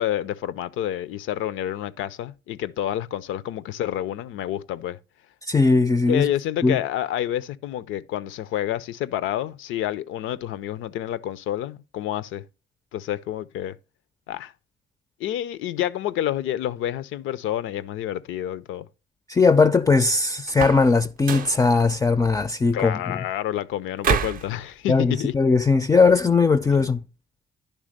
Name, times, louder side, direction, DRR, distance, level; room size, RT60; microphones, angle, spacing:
voice 1, 0.0-5.0 6.1-12.4 12.9-13.8 14.3-14.5 15.2-18.9 22.7-25.3 26.8-26.9, left 12 dB, 90° left, 0.6 m, -28 dB
voice 2, 5.5-6.3 6.6-6.8 19.3-23.2 24.9-27.0, left 4 dB, 15° left, 0.4 m, -19 dB
sound 1, 20.5-20.9 21.2-21.6 24.0-24.5, right 7 dB, 45° right, 0.5 m, -26 dB
10.0 x 3.4 x 6.5 m
cardioid pair, 90°, 20 cm